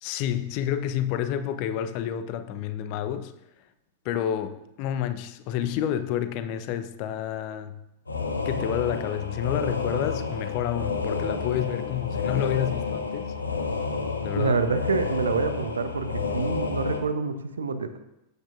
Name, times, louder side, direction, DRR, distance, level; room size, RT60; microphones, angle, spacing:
voice 1, 0.0-3.3 4.0-7.8 8.4-13.4 14.2-14.6, left 10 dB, 45° left, 0.7 m, -29 dB
sound 1, 8.1-17.0, left 4 dB, 80° left, 1.2 m, -30 dB
voice 2, 14.3-18.0, right 4 dB, 70° right, 0.8 m, -27 dB
14.5 x 8.9 x 2.5 m
figure-of-eight pair, 90°, 0 cm